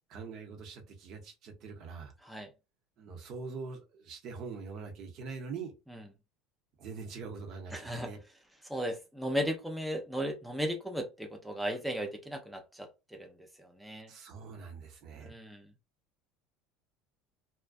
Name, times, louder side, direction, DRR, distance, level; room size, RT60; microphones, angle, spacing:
voice 1, 0.1-2.1 3.0-5.7 6.8-8.2 14.1-15.4, right 5 dB, 55° right, 0.8 m, -43 dB
voice 2, 7.7-8.1 8.7-12.9 13.2-13.3 13.6-14.1 15.2-15.7, equal, 5° right, 0.5 m, -35 dB
2.5 x 2.2 x 2.3 m
supercardioid pair, 110°, 0 cm